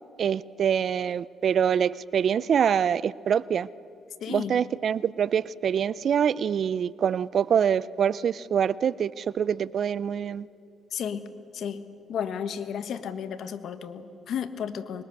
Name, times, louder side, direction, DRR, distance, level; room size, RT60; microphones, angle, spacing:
voice 1, 0.2-3.7 4.3-10.5, right 8 dB, 55° right, 20 dB, 0.4 m, -25 dB
voice 2, 4.2-4.6 10.9-11.3 11.5-11.8 12.1-15.0, left 8 dB, 70° left, 10 dB, 1.3 m, -33 dB
25.0 x 21.5 x 6.6 m, 2.7 s
cardioid pair, 90°, 0 cm